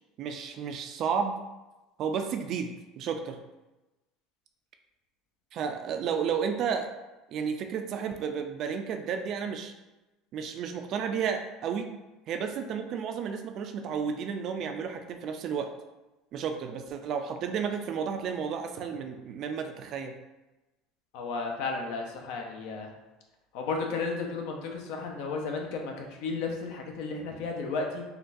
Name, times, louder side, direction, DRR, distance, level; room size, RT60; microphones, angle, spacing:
voice 1, 0.2-1.4 2.0-3.4 5.5-6.9 7.3-9.7 10.3-11.9 12.3-15.7 16.3-20.1, right 6 dB, 45° right, 6 dB, 0.3 m, -32 dB
voice 2, 21.1-22.9 23.5-28.0, left 4 dB, 70° left, 2 dB, 0.6 m, -33 dB
3.7 x 2.3 x 2.6 m, 1.1 s
cardioid pair, 135°, 0 cm